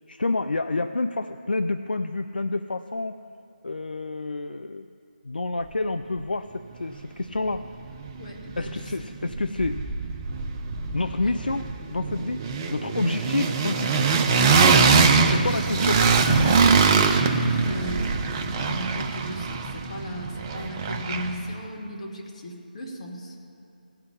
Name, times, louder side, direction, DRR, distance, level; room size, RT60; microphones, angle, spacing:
voice 1, 0.1-3.2 3.6-4.9 5.2-7.7 8.6-9.8 10.9-14.1 14.5-16.6, left 2 dB, 70° left, 9 dB, 0.4 m, -29 dB
sound 1, 7.5-7.6 7.9-9.0 9.3-21.5, right 5 dB, 15° right, 0.4 m, -23 dB
voice 2, 8.2-8.9 9.2-9.3 11.2-11.3 17.6-23.4, equal, 40° left, 0 dB, 1.7 m, -36 dB
16.5 x 5.9 x 9.7 m, 2.5 s
figure-of-eight pair, 155°, 5 cm